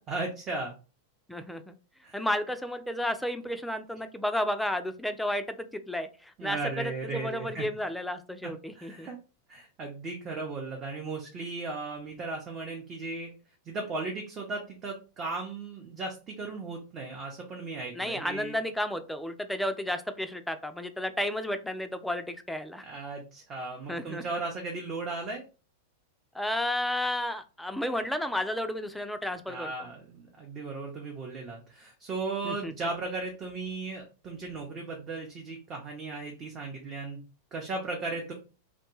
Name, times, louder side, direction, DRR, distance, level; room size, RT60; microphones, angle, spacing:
voice 1, 0.1-0.7 2.0-2.2 6.4-7.6 8.4-9.2 9.5-13.3 13.7-18.5 22.8-25.4 29.5-37.2 37.5-38.3, right 3 dB, 35° right, 1 dB, 0.7 m, -36 dB
voice 2, 1.3-1.7 2.1-9.1 17.9-22.8 23.9-24.4 26.3-29.9 32.4-32.7, left 1 dB, 5° left, 8 dB, 0.3 m, -32 dB
2.5 x 2.1 x 3.0 m, 0.33 s
hypercardioid pair, 95°, 0 cm